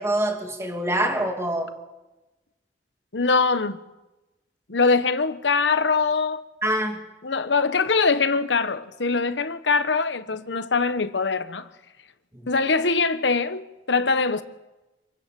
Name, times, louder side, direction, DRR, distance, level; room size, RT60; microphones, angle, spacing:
voice 1, 0.0-1.7 6.6-7.1 12.3-12.5, right 1 dB, 15° right, 2.8 m, -25 dB
voice 2, 3.1-3.8 4.7-6.4 7.2-11.7 12.5-14.4, left 4 dB, 80° left, 1.2 m, -23 dB
27.0 x 19.5 x 7.7 m
head